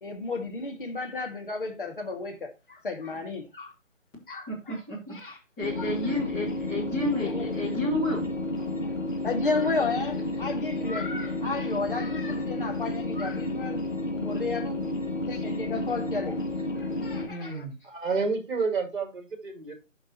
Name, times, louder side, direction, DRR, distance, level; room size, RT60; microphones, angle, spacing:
voice 1, 0.0-3.7 4.3-4.8 5.1-5.4 5.8-6.2 7.2-7.5 8.8-9.0 9.2-13.8 14.1-14.9 15.3-16.4 16.8-17.7, left 3 dB, 40° left, 1.8 m, -33 dB
voice 2, 4.5-8.2 8.6-8.8 17.3-17.8, left 1 dB, 10° left, 1.8 m, -32 dB
sound 1, 5.6-17.3, left 2 dB, 75° left, 2.3 m, -31 dB
voice 3, 17.8-19.7, right 4 dB, 40° right, 2.4 m, -29 dB
12.5 x 5.2 x 2.8 m
figure-of-eight pair, 155°, 39 cm